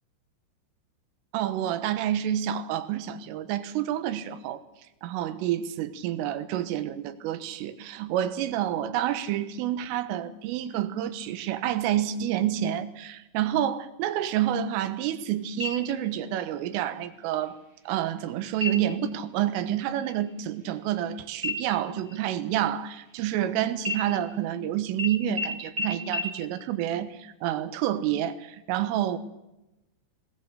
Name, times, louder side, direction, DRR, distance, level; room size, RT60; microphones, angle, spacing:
voice 1, 1.3-4.6 5.0-17.6 17.9-29.2, right 11 dB, 90° right, 11 dB, 3.9 m, -28 dB
sound 1, 15.6-16.3 16.7-16.8 17.3-17.8 18.5-19.1 19.4-19.7 20.0-21.1 21.4-23.4 23.8-24.6 25.0-25.1 25.4-25.5 25.8-25.9 26.1-26.2, left 2 dB, 15° right, 2.7 m, -34 dB
20.0 x 19.0 x 8.1 m, 0.94 s
omnidirectional pair, 5.7 m